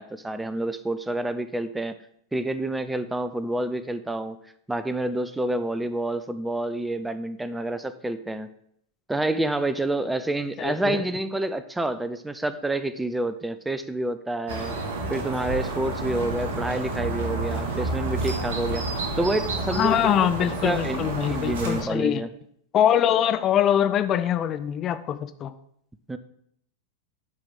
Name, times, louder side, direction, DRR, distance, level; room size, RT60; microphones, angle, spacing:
voice 1, 0.0-2.0 2.3-4.4 4.7-8.5 9.1-14.7 15.1-18.9 19.2-20.2 20.6-21.0 21.3-22.3 26.1-26.2, right 1 dB, 5° right, 12 dB, 0.6 m, -28 dB
voice 2, 10.6-11.0 19.7-22.2 22.7-25.5, left 10 dB, 30° left, 11 dB, 0.5 m, -23 dB
sound 1, 14.5-21.8, right 2 dB, 50° right, 2.0 m, -30 dB
9.1 x 4.9 x 7.3 m, 0.70 s
figure-of-eight pair, 90°, 0 cm